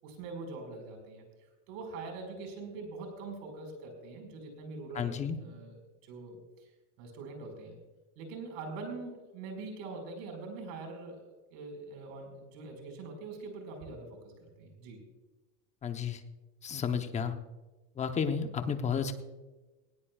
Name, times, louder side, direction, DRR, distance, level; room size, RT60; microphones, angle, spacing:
voice 1, 0.0-1.3 1.7-5.8 6.0-6.7 7.0-7.8 8.2-15.0, right 3 dB, 55° right, 3 dB, 5.2 m, -43 dB
voice 2, 4.9-5.4 15.8-16.2 16.6-17.3 18.0-19.1, left 6 dB, 15° left, 7 dB, 0.8 m, -32 dB
19.0 x 17.5 x 2.4 m, 1.2 s
supercardioid pair, 155°, 44 cm